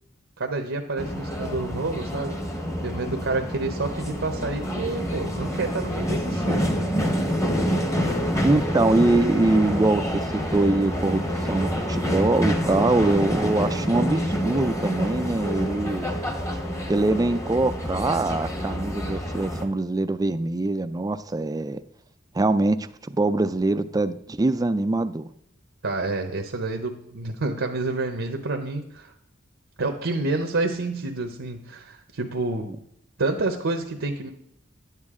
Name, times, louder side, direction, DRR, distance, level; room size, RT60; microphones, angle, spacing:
voice 1, 0.4-2.4 2.8-7.4 25.8-29.1 29.8-32.7 33.2-34.3, right 3 dB, 70° right, 4 dB, 0.8 m, -29 dB
sound 1, 1.0-19.6, equal, 15° left, 1.0 m, -27 dB
voice 2, 8.4-10.0 10.3-16.0 16.9-21.8 22.3-22.9 23.1-25.3 32.7-32.8, right 2 dB, 20° right, 12 dB, 0.4 m, -23 dB
10.5 x 8.3 x 3.7 m, 0.72 s
head